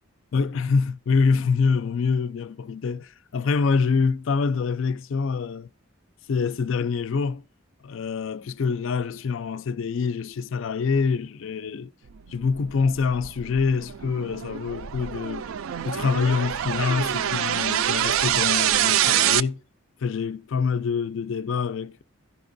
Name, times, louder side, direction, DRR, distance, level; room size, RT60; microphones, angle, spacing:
voice 1, 0.3-5.7 6.3-7.4 7.8-11.9 12.3-15.5 15.8-19.6 20.0-22.0, left 5 dB, 65° left, 0.4 m, -25 dB
sound 1, 12.4-19.4, right 11 dB, 75° right, 0.4 m, -25 dB
15.0 x 5.8 x 2.6 m
head